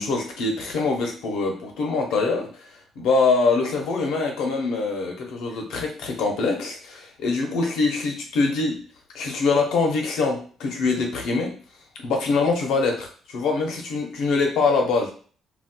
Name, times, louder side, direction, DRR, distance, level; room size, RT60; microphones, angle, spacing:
voice 1, 0.0-2.7 3.0-8.8 9.1-11.6 12.0-15.1, left 4 dB, 70° left, 2 dB, 0.8 m, -24 dB
4.0 x 2.4 x 2.2 m, 0.42 s
cardioid pair, 175°, 0 cm